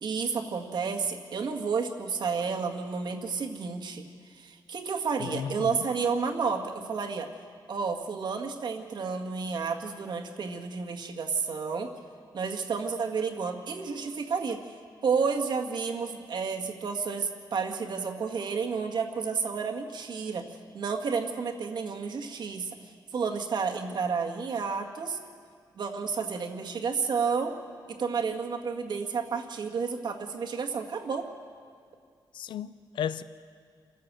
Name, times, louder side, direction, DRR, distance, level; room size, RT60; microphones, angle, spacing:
voice 1, 0.0-4.0 4.3-7.3 7.7-11.9 12.3-14.6 15.0-20.5 20.7-22.8 23.1-25.2 25.8-27.6 27.9-31.3, right 5 dB, 65° right, 2.0 m, -31 dB
voice 2, 5.2-5.9 32.3-33.2, left 9 dB, 90° left, 0.6 m, -34 dB
28.0 x 15.0 x 7.6 m
cardioid pair, 95°, 8 cm